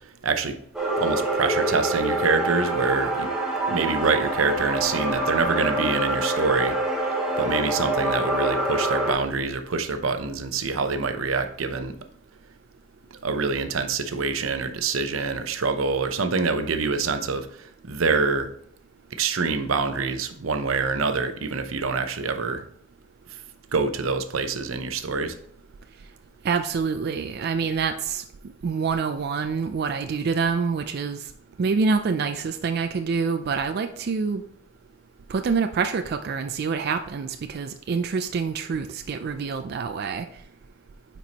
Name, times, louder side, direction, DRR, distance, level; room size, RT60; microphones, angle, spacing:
voice 1, 0.2-0.6 1.0-3.3 3.7-6.8 7.4-12.0 13.2-18.5 19.2-22.6 23.7-25.4, right 4 dB, 85° right, 8 dB, 0.7 m, -25 dB
sound 1, 0.7-9.1, right 1 dB, 5° right, 1.4 m, -26 dB
voice 2, 26.4-28.2 28.6-31.2 31.6-34.4 35.3-40.3, right 5 dB, 50° right, 8 dB, 0.4 m, -26 dB
9.2 x 4.5 x 2.9 m, 0.69 s
head